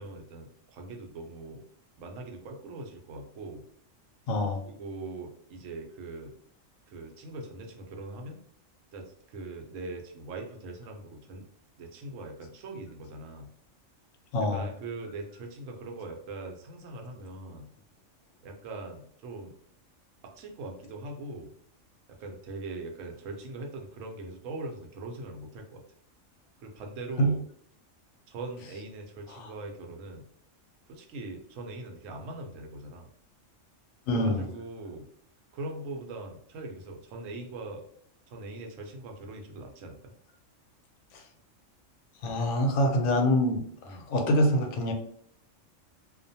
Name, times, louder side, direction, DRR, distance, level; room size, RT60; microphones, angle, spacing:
voice 1, 0.0-1.6 2.0-3.6 4.6-6.3 6.9-8.4 8.9-11.4 11.8-13.5 14.5-17.7 18.4-19.5 20.4-21.5 22.2-25.8 26.6-27.4 28.3-30.3 30.9-33.1 34.1-35.1 35.5-37.8 38.3-40.1 43.8-44.1, right 2 dB, 80° right, 3 dB, 0.9 m, -41 dB
voice 2, 4.3-4.6 14.3-14.6 27.2-27.3 29.3-29.5 34.1-34.5 41.1-41.2 42.2-44.9, equal, 85° left, 3 dB, 1.0 m, -25 dB
2.4 x 2.2 x 2.6 m, 0.62 s
omnidirectional pair, 1.3 m